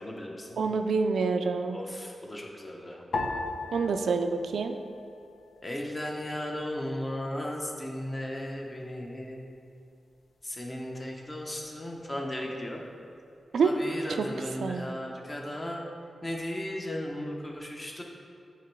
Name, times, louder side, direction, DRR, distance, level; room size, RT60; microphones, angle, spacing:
voice 1, 0.0-0.6 1.7-3.0 5.6-9.4 10.4-12.8 13.6-15.8 16.2-18.0, left 1 dB, 20° left, 0 dB, 0.8 m, -36 dB
voice 2, 0.6-1.8 3.7-4.8 13.5-13.7 14.1-14.3 14.6-14.9, right 5 dB, 90° right, 7 dB, 0.3 m, -27 dB
sound 1, 3.1-5.7 5.9-6.8 7.4-7.9, left 2 dB, 75° left, 0.6 m, -37 dB
8.6 x 3.0 x 4.5 m, 2.6 s
wide cardioid pair, 100°, 0 cm